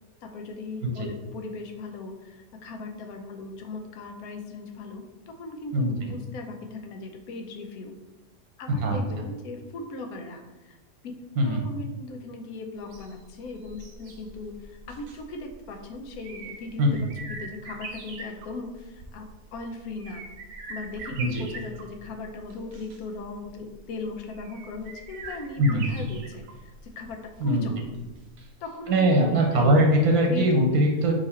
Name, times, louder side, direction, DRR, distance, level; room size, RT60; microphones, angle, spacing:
voice 1, 0.2-7.9 8.6-10.8 11.0-11.1 11.4-19.3 19.5-20.2 20.7-27.8 28.6-29.6 30.3-30.9, left 3 dB, 80° left, 3 dB, 1.1 m, -38 dB
voice 2, 8.7-9.0 11.4-11.6 16.8-17.0 21.2-21.4 25.6-25.8 27.4-27.6 28.9-31.1, right 1 dB, 90° right, 1 dB, 1.2 m, -21 dB
sound 1, 12.8-28.7 29.0-29.1, right 3 dB, 70° right, 1.0 m, -43 dB
3.8 x 2.9 x 4.1 m, 1.1 s
omnidirectional pair, 1.5 m